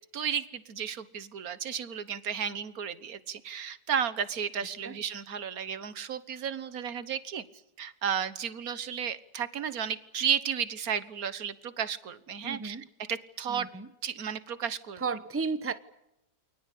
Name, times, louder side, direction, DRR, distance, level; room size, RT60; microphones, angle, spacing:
voice 1, 0.1-7.4 7.8-13.7 14.0-15.0, right 8 dB, 55° right, 1.6 m, -33 dB
voice 2, 12.4-12.9 13.5-13.9 15.0-15.7, right 4 dB, 15° right, 0.5 m, -33 dB
29.0 x 22.0 x 8.5 m
omnidirectional pair, 2.0 m